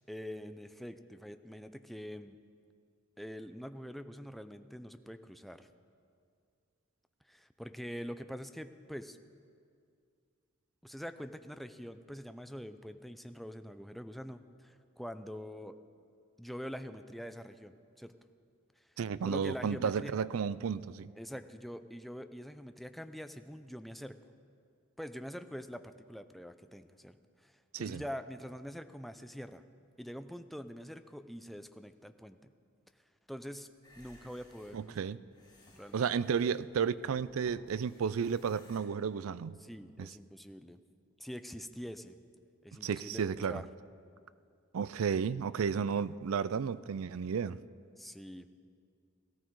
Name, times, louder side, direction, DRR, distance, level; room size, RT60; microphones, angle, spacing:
voice 1, 0.1-2.4 3.2-5.7 7.3-9.2 10.8-15.7 16.4-18.1 18.8-18.9 19.3-20.1 21.2-24.2 25.0-27.2 27.4-29.6 30.0-32.5 33.3-33.7 34.0-35.1 35.7-36.1 39.6-40.8 41.2-42.2 42.6-43.7 48.0-48.5, equal, ahead, 0.4 m, -45 dB
voice 2, 19.0-21.1 27.7-28.0 34.7-35.2 35.9-39.6 40.0-40.1 42.8-43.6 44.7-47.6, right 6 dB, 80° right, 0.4 m, -33 dB
sound 1, 33.8-38.8, left 1 dB, 20° left, 4.4 m, -61 dB
17.5 x 14.0 x 4.7 m
head